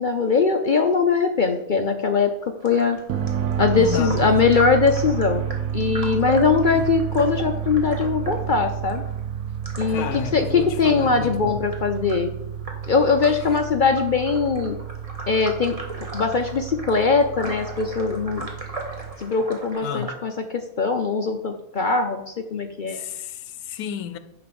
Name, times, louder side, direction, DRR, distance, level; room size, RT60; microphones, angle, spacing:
voice 1, 0.0-2.3 2.6-3.0 3.6-5.4 5.7-9.0 9.8-10.1 10.3-12.3 12.9-14.8 15.3-15.8 16.1-18.5 19.2-23.0, left 5 dB, 60° left, 0.5 m, -21 dB
sound 1, 2.6-20.1, right 2 dB, 25° right, 1.6 m, -38 dB
sound 2, 3.1-19.2, right 9 dB, 80° right, 1.1 m, -30 dB
voice 2, 3.7-4.5 6.8-6.9 9.9-11.6 17.4-17.6 18.3-18.6 19.8-20.1 22.8-24.2, left 9 dB, 85° left, 1.1 m, -32 dB
10.0 x 4.0 x 6.9 m
omnidirectional pair, 1.5 m